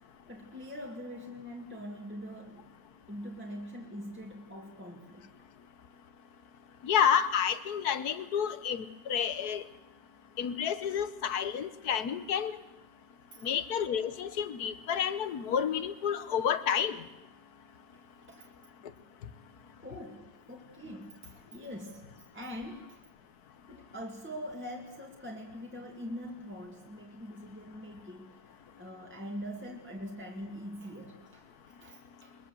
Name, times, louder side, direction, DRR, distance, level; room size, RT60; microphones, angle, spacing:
voice 1, 0.3-2.7 3.1-5.3 13.3-13.5 17.9-18.0 18.3-18.5 19.8-23.0 23.7-32.4, equal, 5° right, 0 dB, 2.1 m, -43 dB
voice 2, 6.8-9.6 10.4-12.5 13.4-17.0, left 8 dB, 60° left, 14 dB, 1.5 m, -30 dB
22.0 x 21.0 x 7.8 m, 0.99 s
omnidirectional pair, 2.0 m